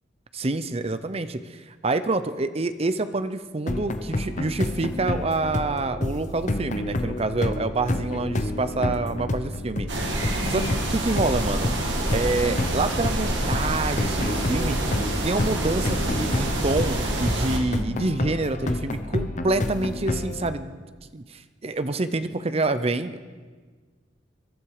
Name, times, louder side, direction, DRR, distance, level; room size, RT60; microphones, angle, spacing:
voice 1, 0.3-9.9 10.5-11.7 12.1-14.8 15.2-20.8 21.1-23.2, right 2 dB, 35° right, 11 dB, 0.7 m, -27 dB
sound 1, 3.7-20.5, left 1 dB, 40° left, 0.9 m, -29 dB
sound 2, 9.9-17.6, right 1 dB, 85° right, 2.4 m, -27 dB
23.0 x 12.0 x 4.9 m, 1.5 s
head